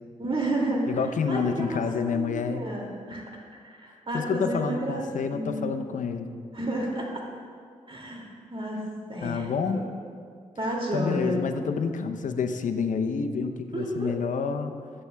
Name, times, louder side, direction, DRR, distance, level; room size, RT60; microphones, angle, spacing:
voice 1, 0.2-1.0 1.3-1.8 2.1-3.2 3.6-5.7 6.5-7.0 7.9-8.2 8.5-9.5 9.7-9.8 10.6-11.4 13.7-14.1, right 1 dB, 40° right, -2 dB, 2.4 m, -31 dB
voice 2, 0.9-2.6 4.1-6.3 9.2-9.9 10.9-14.7, left 5 dB, 65° left, 7 dB, 0.7 m, -28 dB
14.5 x 8.7 x 2.3 m, 2.1 s
supercardioid pair, 45°, 14 cm